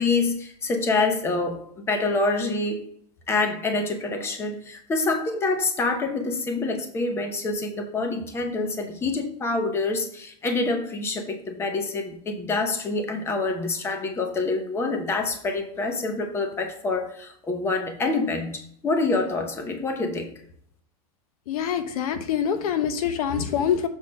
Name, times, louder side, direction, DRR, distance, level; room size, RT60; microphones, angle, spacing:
voice 1, 0.0-2.8 3.3-20.3, left 3 dB, 15° left, 5 dB, 0.8 m, -26 dB
voice 2, 21.5-23.9, left 8 dB, 80° left, 10 dB, 0.9 m, -25 dB
7.1 x 4.2 x 5.2 m, 0.65 s
supercardioid pair, 160°, 19 cm